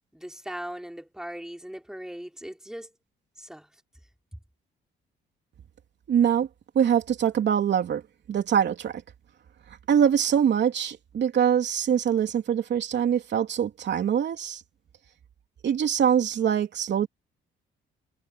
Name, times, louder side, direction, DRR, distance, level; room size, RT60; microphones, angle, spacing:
voice 1, 0.1-2.9 3.4-3.7, equal, 5° right, 5.0 m, -39 dB
voice 2, 6.1-6.5 6.7-8.0 8.3-9.0 9.9-14.6 15.6-17.1, right 8 dB, 60° right, 3.3 m, -23 dB
cardioid pair, 90°, 20 cm